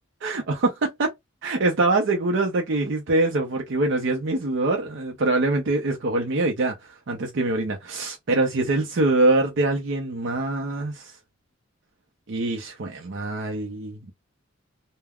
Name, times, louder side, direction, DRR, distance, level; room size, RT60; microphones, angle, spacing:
voice 1, 0.2-1.1 1.4-11.1 12.3-14.1, right 2 dB, 65° right, 0.6 m, -24 dB
2.3 x 2.1 x 3.4 m
head